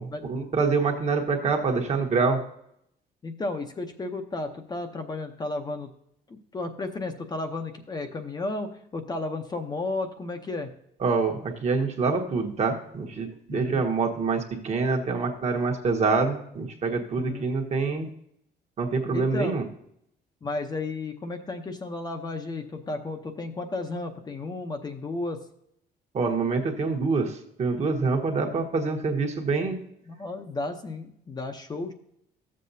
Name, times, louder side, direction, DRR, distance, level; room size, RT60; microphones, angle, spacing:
voice 1, 0.0-2.4 11.0-18.1 18.8-19.6 26.1-29.8, right 4 dB, 40° right, 3 dB, 1.3 m, -26 dB
voice 2, 3.2-5.9 6.3-10.7 13.5-13.8 17.2-17.5 19.1-19.6 20.4-25.4 30.1-31.9, left 2 dB, 20° left, 5 dB, 0.7 m, -33 dB
13.5 x 7.5 x 2.7 m, 0.73 s
cardioid pair, 150°, 18 cm